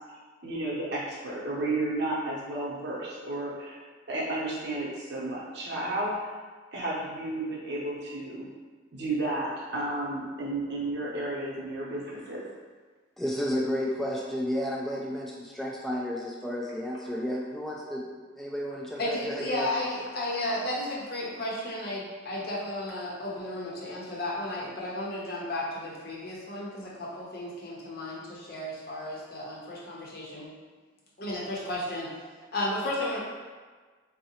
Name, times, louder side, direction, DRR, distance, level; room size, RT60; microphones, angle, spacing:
voice 1, 0.4-3.8 4.1-6.2 6.7-8.5 8.9-12.5, right 2 dB, 55° right, -5 dB, 0.7 m, -32 dB
voice 2, 13.2-18.0 18.3-19.7, equal, ahead, -4 dB, 0.3 m, -32 dB
voice 3, 19.0-30.5 31.2-32.1 32.5-33.2, left 1 dB, 50° left, -4 dB, 0.7 m, -33 dB
3.6 x 2.0 x 2.8 m, 1.4 s
head